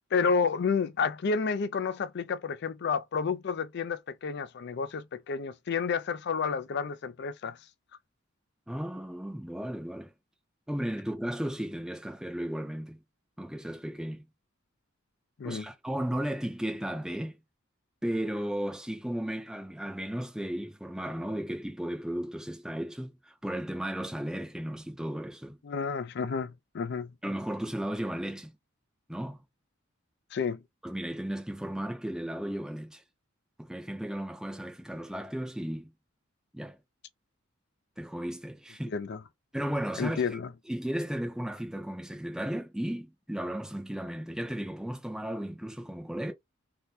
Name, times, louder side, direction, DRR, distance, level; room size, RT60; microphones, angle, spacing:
voice 1, 0.1-7.6 15.4-15.6 25.6-27.1 30.3-30.6 38.9-39.2 40.0-40.5, left 5 dB, 55° left, 0.4 m, -30 dB
voice 2, 8.7-10.1 10.7-13.0 13.4-14.2 15.4-17.4 18.0-25.6 27.2-28.5 29.1-29.4 30.8-33.0 33.6-35.9 36.5-36.8 38.0-38.9 39.5-40.4 40.7-46.3, right 1 dB, 5° right, 0.6 m, -35 dB
2.8 x 2.2 x 3.2 m
head